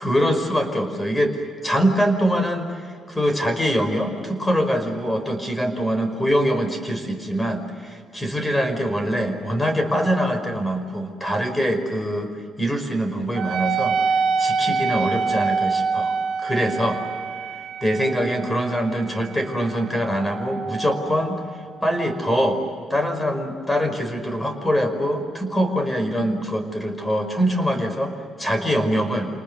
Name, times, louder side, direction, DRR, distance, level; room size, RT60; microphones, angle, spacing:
voice 1, 0.0-1.4 1.6-12.3 12.6-14.0 14.4-17.0 17.8-21.4 21.8-22.6 22.9-29.3, equal, 15° left, 7 dB, 5.1 m, -23 dB
Wind instrument woodwind instrument, 13.4-22.3, right 5 dB, 75° right, 1.5 m, -26 dB
28.5 x 20.0 x 9.8 m, 2.1 s
cardioid pair, 90°, 0 cm